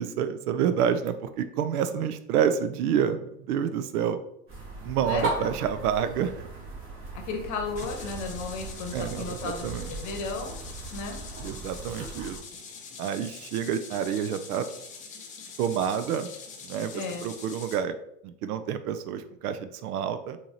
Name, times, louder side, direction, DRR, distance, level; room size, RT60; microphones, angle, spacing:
voice 1, 0.0-4.2 4.8-6.4 8.9-9.9 11.4-12.4 13.0-14.7 15.6-16.3 16.6-17.9 18.2-20.4, right 8 dB, 70° right, 10 dB, 0.5 m, -28 dB
sound 1, 4.5-12.4, right 2 dB, 25° right, 1.4 m, -38 dB
voice 2, 5.0-5.5 7.2-10.6 10.9-11.2 16.9-17.3, left 4 dB, 40° left, 3 dB, 1.0 m, -34 dB
sound 2, 7.7-17.8, left 5 dB, 15° left, 0.4 m, -44 dB
4.4 x 2.8 x 2.9 m, 0.76 s
hypercardioid pair, 100°, 48 cm